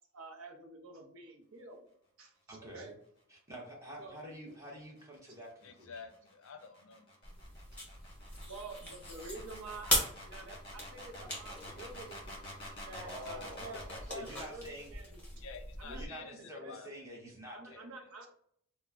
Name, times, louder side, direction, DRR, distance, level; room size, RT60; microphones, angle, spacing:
voice 1, 0.1-1.8 2.2-3.0 4.0-4.1 8.4-12.3 12.9-15.4 15.8-16.8 17.5-18.3, right 3 dB, 65° right, 2 dB, 0.7 m, -48 dB
voice 2, 2.5-2.9 3.3-6.0 12.9-14.9 15.9-17.9, equal, 15° right, -2 dB, 0.8 m, -48 dB
sound 1, 4.8-14.1, left 1 dB, 25° left, 1.3 m, -48 dB
voice 3, 5.6-7.1 15.3-16.4 16.7-16.9 17.7-18.1, left 5 dB, 60° left, 7 dB, 0.4 m, -50 dB
sound 2, 7.2-16.1, left 1 dB, 5° left, 1.1 m, -40 dB
3.0 x 2.1 x 3.4 m, 0.67 s
head